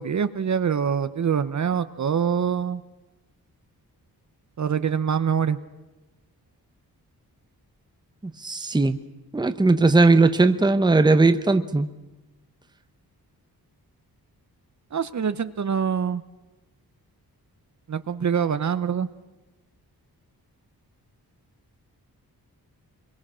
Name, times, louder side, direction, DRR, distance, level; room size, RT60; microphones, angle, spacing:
voice 1, 0.0-2.8 4.6-5.6 14.9-16.2 17.9-19.1, right 7 dB, 50° right, 12 dB, 0.8 m, -24 dB
voice 2, 8.4-9.0 9.3-11.9, right 3 dB, 10° right, 9 dB, 0.8 m, -18 dB
27.0 x 22.5 x 6.2 m, 1.1 s
wide cardioid pair, 145°, 38 cm